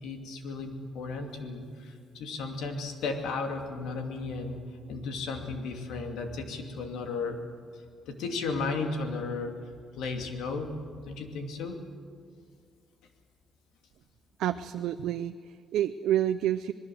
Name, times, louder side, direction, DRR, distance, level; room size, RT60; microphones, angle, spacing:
voice 1, 0.0-4.6 4.9-7.4 8.1-9.6 9.9-10.7 11.0-11.8, left 4 dB, 85° left, 4 dB, 2.6 m, -34 dB
voice 2, 14.4-16.7, right 11 dB, 80° right, 9 dB, 0.6 m, -29 dB
26.5 x 20.0 x 7.8 m, 2.1 s
cardioid pair, 180°, 0 cm